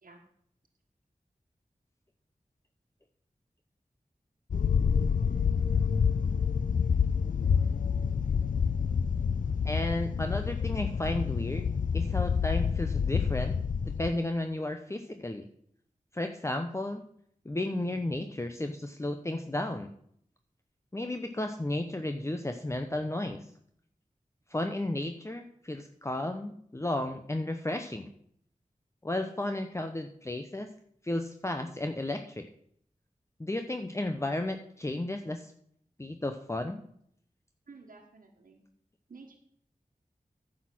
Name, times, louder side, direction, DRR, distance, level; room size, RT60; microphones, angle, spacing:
sound 1, 4.5-14.1, left 6 dB, 75° left, 0.4 m, -28 dB
voice 1, 9.6-11.7 11.9-13.5 14.0-15.5 16.1-17.0 17.4-19.9 20.9-23.4 24.5-28.1 29.0-30.7 31.0-32.5 33.4-35.5 36.0-36.9, left 1 dB, 20° left, 6 dB, 0.8 m, -33 dB
voice 2, 37.7-38.6 39.1-39.4, right 4 dB, 85° right, 0 dB, 1.4 m, -52 dB
10.0 x 6.4 x 6.1 m, 0.66 s
wide cardioid pair, 60°, 14 cm